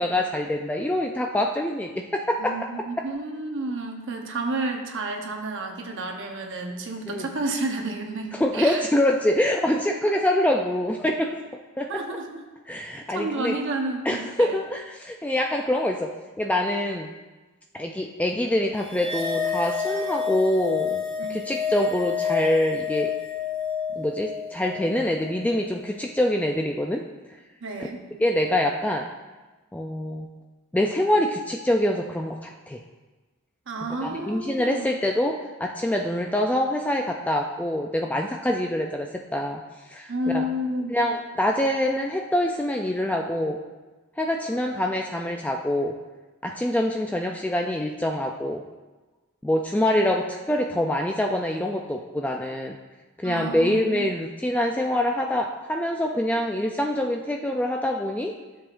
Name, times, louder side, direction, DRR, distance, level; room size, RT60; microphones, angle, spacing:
voice 1, 0.0-2.5 7.1-7.3 8.3-11.4 11.8-12.0 12.7-13.5 14.1-17.1 17.7-21.0 21.3-23.1 24.0-27.0 28.2-29.1 29.7-30.3 30.7-32.8 34.0-40.4 40.9-43.6 44.2-45.9 46.4-48.6 49.4-52.8 53.2-58.3, left 1 dB, 5° left, 1 dB, 0.4 m, -25 dB
voice 2, 2.4-8.8 11.9-12.4 13.1-14.5 21.2-21.5 27.6-28.0 33.7-34.9 40.1-41.2 53.2-54.1, right 2 dB, 60° right, 3 dB, 1.0 m, -31 dB
sound 1, 18.9-25.4, left 7 dB, 30° left, 1.8 m, -29 dB
12.5 x 7.1 x 2.6 m, 1.2 s
head